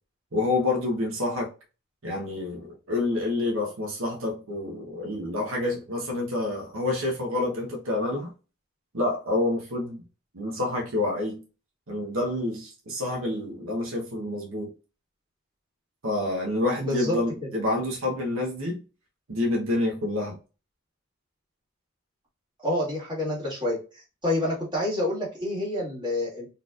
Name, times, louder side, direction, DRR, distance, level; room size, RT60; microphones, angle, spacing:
voice 1, 0.3-1.5 2.0-8.3 8.9-10.0 10.3-11.4 11.9-14.7 16.0-18.8 19.3-20.4, left 2 dB, 70° right, 1.0 m, -28 dB
voice 2, 16.8-17.2 22.6-23.8 24.2-26.5, left 1 dB, 20° right, 1.9 m, -27 dB
4.1 x 3.2 x 2.4 m
head